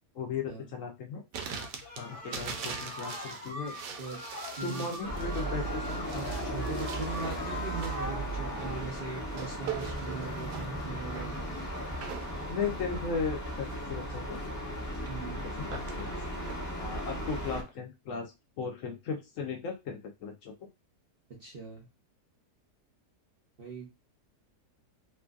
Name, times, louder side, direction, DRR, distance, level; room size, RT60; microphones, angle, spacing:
voice 1, 0.1-1.2 2.0-3.8 4.6-6.0 6.4-6.5 12.5-14.4 15.4-16.2 16.8-18.3 18.6-20.7, left 5 dB, 70° left, 3 dB, 0.8 m, -36 dB
sound 1, 1.3-16.5, right 7 dB, 90° right, 1.2 m, -43 dB
sound 2, 1.5-8.9, left 1 dB, 50° left, 1.1 m, -42 dB
voice 2, 4.6-4.9 6.1-11.3 15.1-15.5 21.4-21.9 23.6-23.9, right 3 dB, 50° right, -1 dB, 0.6 m, -40 dB
sound 3, 5.0-17.6, right 1 dB, 20° left, 0.5 m, -36 dB
3.0 x 2.5 x 2.3 m, 0.25 s
omnidirectional pair, 1.8 m